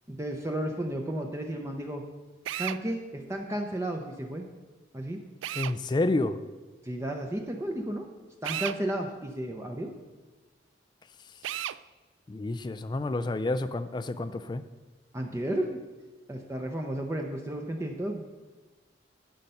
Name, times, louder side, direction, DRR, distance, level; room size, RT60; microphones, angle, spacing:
voice 1, 0.1-2.0 2.6-4.4 4.9-5.2 6.8-8.1 8.4-9.9 15.1-15.8 16.3-18.2, right 1 dB, 15° right, 2 dB, 0.6 m, -33 dB
Drill, 2.4-2.8 5.4-5.8 8.4-8.8 11.4-11.8, right 12 dB, 85° right, 0.3 m, -33 dB
voice 2, 5.6-6.4 12.3-14.6, left 2 dB, 25° left, 12 dB, 0.3 m, -29 dB
11.5 x 6.6 x 5.5 m, 1.3 s
head